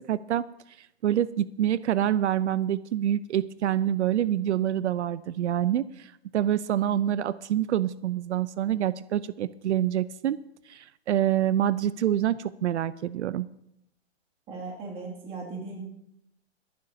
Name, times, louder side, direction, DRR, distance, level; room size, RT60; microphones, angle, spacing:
voice 1, 0.1-0.4 0.8-10.4 10.7-13.5, right 11 dB, 80° right, 16 dB, 0.6 m, -26 dB
voice 2, 14.5-15.8, right 3 dB, 15° right, -2 dB, 2.4 m, -37 dB
22.5 x 11.0 x 2.8 m, 0.78 s
hypercardioid pair, 170°, 34 cm